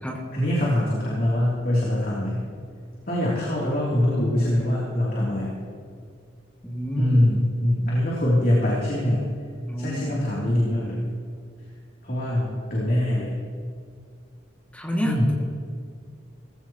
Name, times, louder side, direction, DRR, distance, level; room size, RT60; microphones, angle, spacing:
voice 1, 0.3-2.5 3.1-5.6 7.0-9.3 9.8-11.0 12.0-13.4 15.0-15.4, left 1 dB, 45° left, -6 dB, 3.2 m, -23 dB
voice 2, 6.6-7.3 9.7-10.2 14.7-15.4, equal, 5° left, -2 dB, 2.3 m, -29 dB
18.5 x 16.0 x 3.1 m, 2.2 s
head